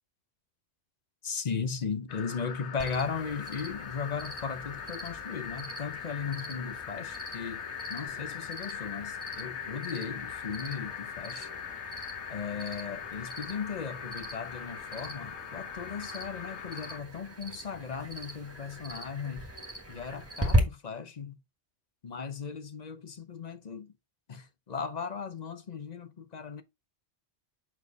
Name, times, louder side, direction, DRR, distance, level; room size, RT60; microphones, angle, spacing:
voice 1, 1.2-7.6 7.9-11.5 12.3-19.5 19.9-21.4 22.0-23.9 24.3-26.6, left 6 dB, 45° left, 0.7 m, -37 dB
sound 1, 2.1-17.0, left 8 dB, 80° left, 1.1 m, -41 dB
Cricket, 2.8-20.6, equal, 15° right, 1.6 m, -38 dB
6.4 x 4.6 x 4.0 m
omnidirectional pair, 1.1 m